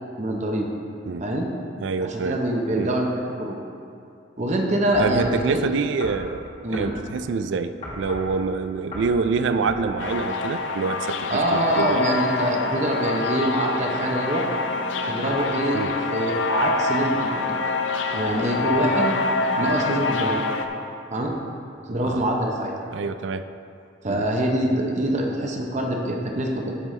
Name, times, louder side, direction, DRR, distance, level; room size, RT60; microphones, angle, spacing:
voice 1, 0.2-0.7 1.2-1.5 2.0-3.1 3.4-3.6 4.4-5.6 6.6-7.0 11.3-14.5 15.1-17.5 18.1-19.1 19.6-20.4 21.1-21.4 21.9-22.7 24.0-26.7, right 1 dB, 40° right, 0 dB, 0.7 m, -24 dB
voice 2, 1.8-2.4 2.8-2.9 5.0-12.1 15.7-16.0 22.0-22.2 22.9-23.5 24.1-24.2, right 4 dB, 70° right, 11 dB, 0.3 m, -26 dB
sound 1, 4.9-5.4 6.0-6.2 6.7-6.9 7.8-8.3 8.9-9.2 9.6-9.9, left 1 dB, 35° left, 1.7 m, -36 dB
sound 2, 10.0-20.7, left 3 dB, 70° left, 0.5 m, -26 dB
13.5 x 5.3 x 3.2 m, 2.5 s
head